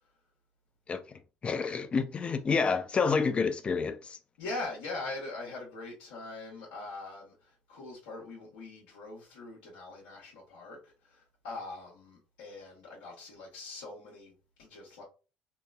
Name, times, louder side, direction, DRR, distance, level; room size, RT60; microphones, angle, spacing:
voice 1, 0.9-4.2, left 5 dB, 35° left, 0.5 m, -29 dB
voice 2, 4.4-15.0, left 2 dB, 85° left, 0.9 m, -42 dB
3.0 x 2.7 x 2.3 m
hypercardioid pair, 65°, 3 cm